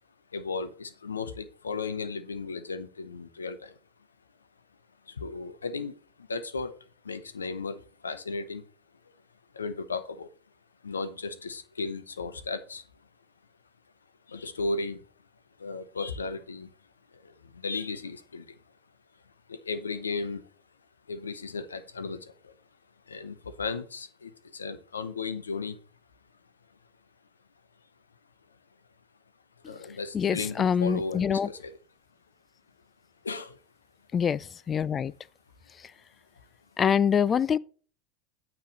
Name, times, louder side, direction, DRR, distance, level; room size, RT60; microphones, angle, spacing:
voice 1, 0.3-3.7 5.2-5.9 6.3-6.8 7.0-8.6 9.5-10.3 10.8-12.8 14.3-15.0 15.6-16.7 17.5-18.5 19.5-20.4 21.1-22.5 23.1-25.8 29.7-31.8 33.2-33.6, left 4 dB, 90° left, 0.7 m, -35 dB
voice 2, 30.1-31.5 34.1-35.1 36.8-37.6, left 7 dB, 30° left, 0.3 m, -25 dB
9.0 x 3.2 x 6.5 m
hypercardioid pair, 85°, 0 cm